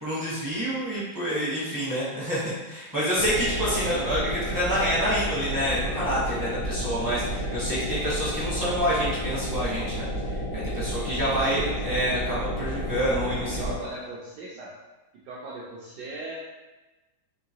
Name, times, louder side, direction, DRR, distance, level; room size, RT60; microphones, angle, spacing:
voice 1, 0.0-13.7, equal, 20° right, -11 dB, 0.5 m, -28 dB
sound 1, 3.2-13.8, equal, 65° left, 1.1 m, -31 dB
voice 2, 3.7-4.0 11.2-11.7 13.6-14.7 15.2-16.4, right 2 dB, 75° right, -5 dB, 1.0 m, -38 dB
3.8 x 3.0 x 2.8 m, 1.1 s
omnidirectional pair, 2.2 m